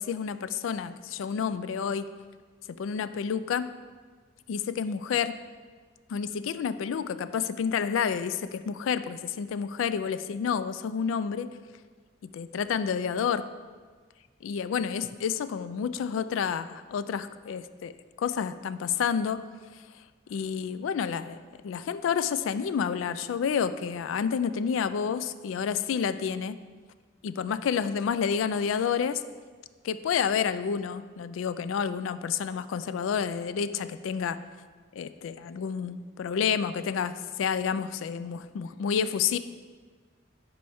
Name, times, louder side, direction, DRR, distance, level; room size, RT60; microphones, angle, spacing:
voice 1, 0.0-2.1 2.7-3.7 4.5-5.4 6.1-11.5 12.2-13.5 14.4-19.4 20.3-21.4 21.6-26.6 27.2-29.2 29.8-34.4 34.9-39.4, left 7 dB, 80° left, 13 dB, 0.3 m, -29 dB
10.5 x 4.4 x 3.5 m, 1.5 s
head